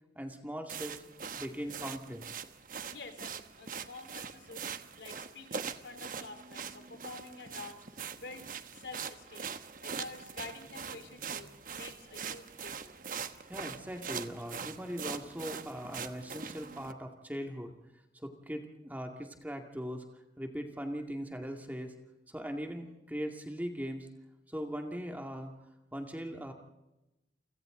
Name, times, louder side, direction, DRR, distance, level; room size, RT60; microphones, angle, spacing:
voice 1, 0.2-1.0 1.3-2.4 13.5-17.7 18.1-21.9 22.3-24.1 24.5-25.5 25.9-26.5, equal, 10° right, 3 dB, 2.1 m, -40 dB
sound 1, 0.7-16.9, right 6 dB, 50° right, 1.1 m, -42 dB
voice 2, 2.9-13.2, left 3 dB, 80° left, 7 dB, 3.4 m, -49 dB
30.0 x 25.0 x 3.9 m, 0.96 s
head